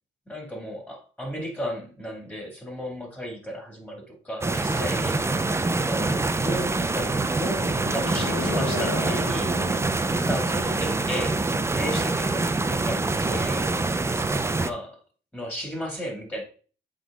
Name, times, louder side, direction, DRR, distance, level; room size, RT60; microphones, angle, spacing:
voice 1, 0.3-5.2 5.7-6.1 6.4-9.5 10.2-13.7 14.0-15.0 15.3-16.4, equal, 10° left, 1 dB, 2.4 m, -34 dB
sound 1, 4.4-14.7, right 3 dB, 15° right, 0.5 m, -25 dB
sound 2, 4.6-13.3, left 3 dB, 85° left, 1.6 m, -38 dB
7.9 x 3.9 x 3.7 m, 0.39 s
cardioid pair, 90°, 20 cm